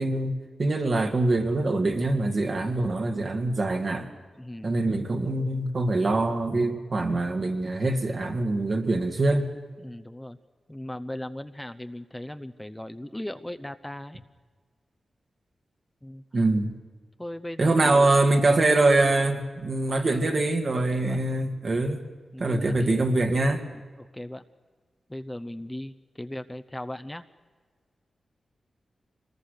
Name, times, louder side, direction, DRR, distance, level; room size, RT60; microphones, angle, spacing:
voice 1, 0.0-4.1 4.6-9.5 16.3-16.7 17.6-22.0 22.4-23.6, right 2 dB, 50° right, 4 dB, 2.3 m, -24 dB
voice 2, 4.4-4.8 9.8-10.4 10.7-14.2 16.0-16.2 17.2-18.1 20.7-21.2 22.3-23.1 24.0-24.4 25.1-27.2, left 1 dB, 10° left, 9 dB, 0.7 m, -38 dB
25.0 x 20.0 x 6.7 m, 1.5 s
cardioid pair, 80°, 0 cm